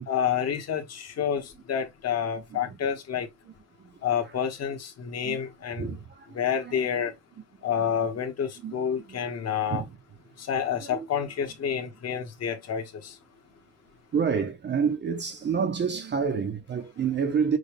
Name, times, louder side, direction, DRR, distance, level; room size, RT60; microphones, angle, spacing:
voice 1, 0.1-3.3 4.0-5.9 6.3-7.1 7.6-9.8 10.4-13.1, left 8 dB, 40° left, 1.2 m, -29 dB
voice 2, 2.5-3.0 3.8-4.0 5.2-5.4 5.7-6.4 6.6-6.8 8.6-8.8 9.1-9.2 9.7-10.0 10.7-11.1 14.1-17.6, right 6 dB, 25° right, 0.6 m, -29 dB
6.5 x 2.3 x 3.3 m
cardioid pair, 175°, 41 cm